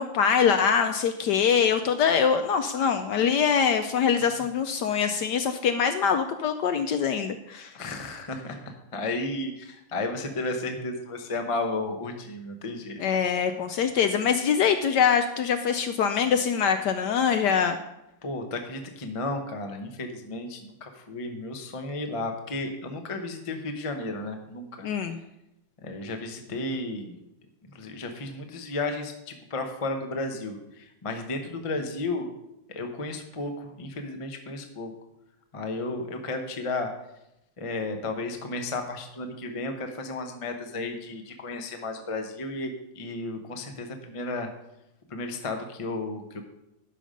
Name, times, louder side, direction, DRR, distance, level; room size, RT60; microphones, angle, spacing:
voice 1, 0.0-7.7 13.0-17.8 24.8-25.2, left 7 dB, 75° left, 8 dB, 1.0 m, -24 dB
voice 2, 7.7-13.0 18.2-24.9 25.8-27.1 27.7-32.3 32.7-34.9 35.5-36.9 37.6-42.7 43.0-44.5 45.1-46.4, left 2 dB, 50° left, 5 dB, 0.4 m, -33 dB
12.0 x 5.1 x 5.1 m, 0.87 s
omnidirectional pair, 2.2 m